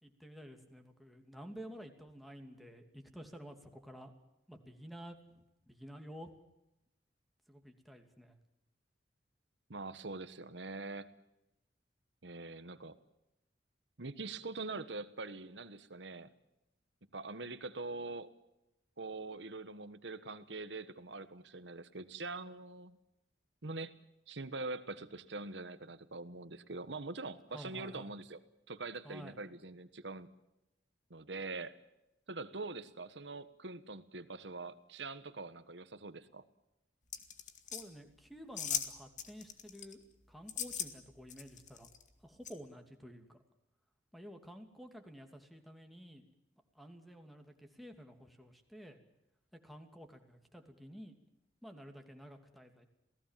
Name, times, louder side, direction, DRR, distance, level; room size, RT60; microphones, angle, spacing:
voice 1, 0.0-4.1 4.5-6.3 7.5-8.4 27.5-28.1 29.0-29.4 37.7-40.0 40.3-41.9 42.2-43.4 44.1-46.2 46.7-49.0 49.6-51.1 51.6-52.8, equal, ahead, 3 dB, 2.8 m, -51 dB
voice 2, 9.7-11.1 12.2-13.0 14.0-16.3 17.1-18.3 19.0-23.0 23.6-23.9 24.3-28.4 28.7-30.3 31.1-31.7 32.3-36.4, right 3 dB, 75° right, 13 dB, 1.4 m, -44 dB
sound 1, 37.1-37.8 38.6-38.9 39.2-39.9 40.5-40.9 41.3-42.0 42.4-42.5, left 8 dB, 45° left, 2.1 m, -38 dB
28.5 x 18.0 x 7.5 m, 0.90 s
head